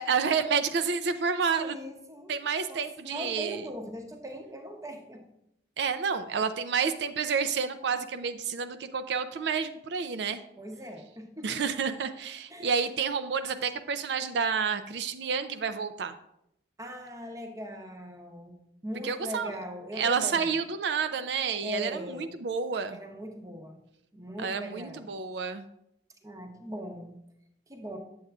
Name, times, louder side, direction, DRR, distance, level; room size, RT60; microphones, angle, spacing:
voice 1, 0.0-1.7 2.3-3.6 5.8-10.4 11.4-16.1 19.0-19.5 19.9-23.0 24.4-25.6, right 6 dB, 65° right, 10 dB, 0.4 m, -29 dB
voice 2, 1.1-2.4 2.7-5.2 10.6-11.7 12.5-12.8 16.8-18.6 18.8-20.5 21.6-22.3 22.9-23.8 24.1-25.3 26.2-27.2 27.7-28.0, equal, 20° right, 4 dB, 0.7 m, -40 dB
7.8 x 7.7 x 2.4 m, 0.78 s
head